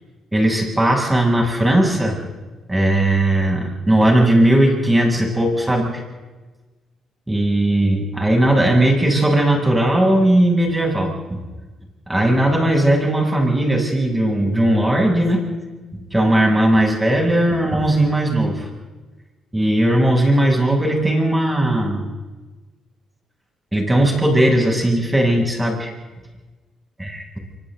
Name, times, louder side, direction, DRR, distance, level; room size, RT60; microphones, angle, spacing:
voice 1, 0.3-2.2 2.7-6.0 7.3-11.4 12.1-15.4 16.1-18.7 19.5-22.1 23.7-25.9 27.0-27.3, right 1 dB, 10° right, 0 dB, 7.9 m, -17 dB
28.0 x 25.0 x 4.0 m, 1.2 s
cardioid pair, 90°, 0 cm